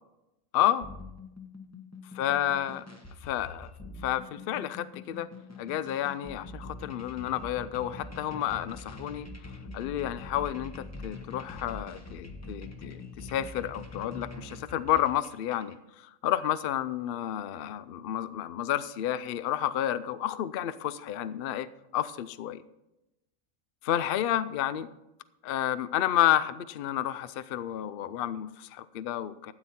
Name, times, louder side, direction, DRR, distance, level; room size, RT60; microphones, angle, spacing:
voice 1, 0.5-0.9 2.2-2.9 3.2-3.7 4.0-5.3 5.6-9.3 9.7-21.7 21.9-22.6 23.8-24.9 25.4-29.5, left 12 dB, 60° left, 15 dB, 0.6 m, -30 dB
sound 1, 0.8-15.8, left 3 dB, 15° left, 0.8 m, -44 dB
13.0 x 9.0 x 4.3 m, 0.93 s
omnidirectional pair, 1.4 m